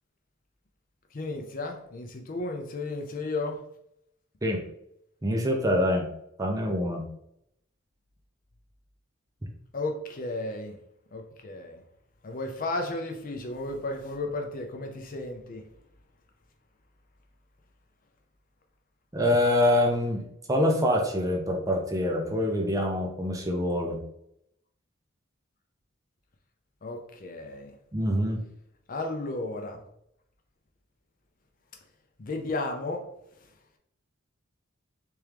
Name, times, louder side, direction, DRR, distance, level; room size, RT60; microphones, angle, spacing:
voice 1, 1.1-3.6 9.7-10.8 11.1-11.8 12.2-15.6 26.8-27.8 28.9-29.8 32.2-33.1, left 2 dB, 40° left, 3 dB, 0.5 m, -34 dB
voice 2, 5.2-6.1 6.4-7.1 19.1-24.0 27.9-28.4, left 1 dB, 15° right, 2 dB, 0.5 m, -25 dB
3.5 x 3.0 x 3.3 m, 0.76 s
head